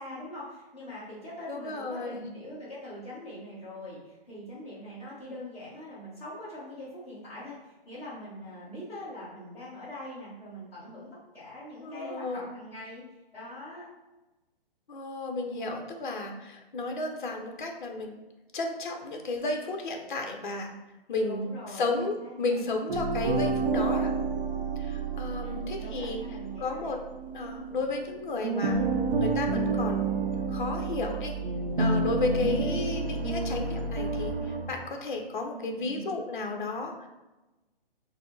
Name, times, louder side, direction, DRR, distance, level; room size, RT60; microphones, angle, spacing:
voice 1, 0.0-13.0 13.3-13.9 21.2-21.9 22.2-22.7 25.4-26.9 32.6-33.0 35.4-36.1, left 1 dB, 10° left, -12 dB, 1.1 m, -43 dB
voice 2, 1.5-2.3 11.8-12.5 14.9-18.2 18.5-20.7 21.1-24.1 24.8-26.2 26.6-27.0 27.3-28.8 29.2-31.4 31.8-37.1, left 3 dB, 55° left, 3 dB, 0.7 m, -33 dB
sound 1, 22.9-28.1 28.4-34.7, right 3 dB, 65° right, 0.6 m, -30 dB
4.0 x 2.0 x 3.8 m, 1.1 s
hypercardioid pair, 165°, 30 cm